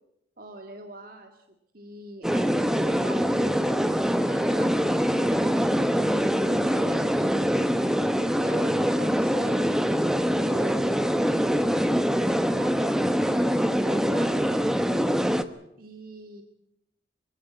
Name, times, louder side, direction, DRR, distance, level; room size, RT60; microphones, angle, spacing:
voice 1, 0.4-1.4 1.7-7.6 8.4-11.1 12.3-14.7 15.8-16.4, right 2 dB, 50° right, 5 dB, 1.8 m, -43 dB
sound 1, 2.2-15.4, equal, 5° right, 0.9 m, -24 dB
23.5 x 16.0 x 9.1 m, 0.83 s
head